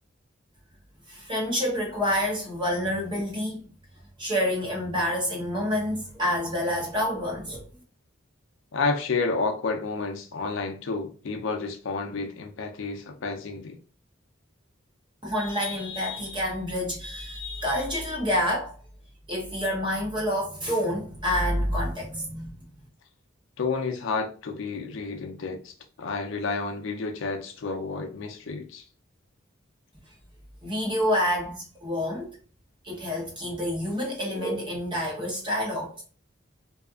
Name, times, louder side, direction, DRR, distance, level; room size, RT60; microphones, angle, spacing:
voice 1, 1.1-3.7 4.2-7.6 15.2-18.7 19.3-22.5 30.6-32.3 32.8-36.0, equal, 25° right, 0.9 m, -28 dB
voice 2, 8.7-13.8 23.6-28.8, left 4 dB, 70° left, 0.4 m, -30 dB
2.6 x 2.3 x 2.3 m
head